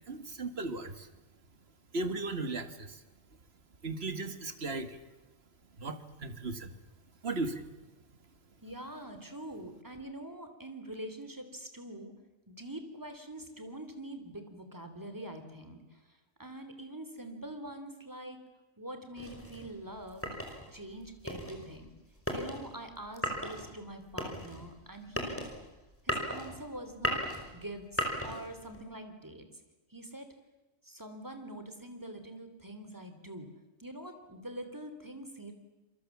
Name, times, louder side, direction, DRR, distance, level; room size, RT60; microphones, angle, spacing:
voice 1, 0.1-1.1 1.9-3.0 3.8-5.0 5.8-6.7 7.2-7.6, right 2 dB, 50° right, 10 dB, 2.0 m, -36 dB
voice 2, 8.6-12.1 12.5-18.4 18.8-20.3 20.7-21.9 22.3-25.4 26.0-27.2 27.5-29.5 29.9-30.3 30.8-33.5 33.8-35.5, right 1 dB, 15° right, 7 dB, 3.2 m, -44 dB
sound 1, 19.1-28.8, equal, 10° left, 5.1 m, -37 dB
28.0 x 23.5 x 7.3 m, 1.1 s
omnidirectional pair, 1.4 m